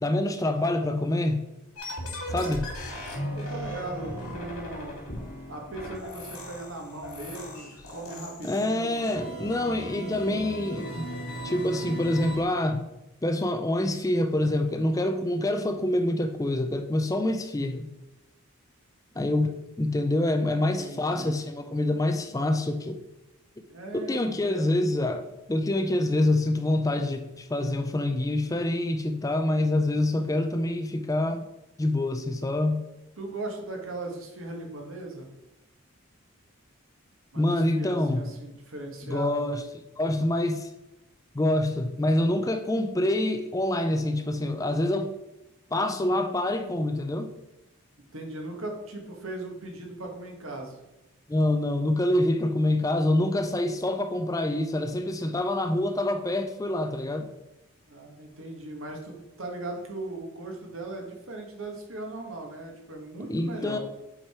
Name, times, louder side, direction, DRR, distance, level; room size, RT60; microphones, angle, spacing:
voice 1, 0.0-1.4 2.3-2.7 8.4-11.1 11.4-12.9 13.2-17.9 19.2-23.0 23.9-31.4 31.8-32.8 37.4-38.2 39.0-39.6 40.0-40.7 41.3-45.2 45.7-47.3 51.3-57.3 63.3-63.8, left 1 dB, 15° left, 7 dB, 0.4 m, -26 dB
sound 1, 1.8-12.4, equal, 85° left, 2.7 m, -37 dB
voice 2, 2.3-2.6 3.3-5.0 5.5-9.1 19.4-19.5 20.5-21.4 23.7-24.7 33.2-35.3 37.3-39.5 48.1-50.8 57.9-63.8, right 2 dB, 70° right, 1 dB, 1.7 m, -38 dB
7.4 x 4.9 x 4.4 m, 0.97 s
head